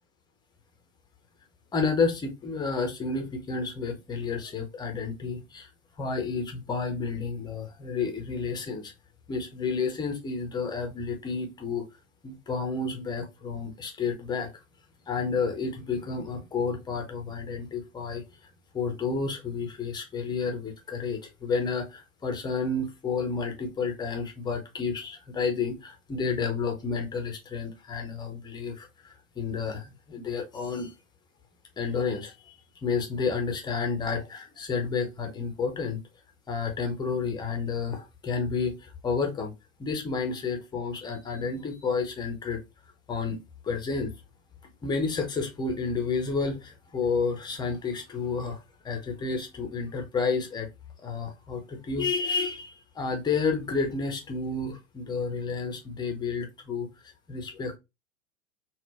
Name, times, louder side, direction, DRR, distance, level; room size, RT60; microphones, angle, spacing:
voice 1, 1.7-5.7 6.0-8.9 9.3-11.9 12.2-14.6 15.1-30.9 31.8-36.0 36.5-39.5 39.8-42.6 43.1-43.4 43.6-44.1 44.8-50.7 51.0-57.8, left 4 dB, 10° left, 0.6 m, -31 dB
3.8 x 2.2 x 3.2 m
figure-of-eight pair, 90°, 40 cm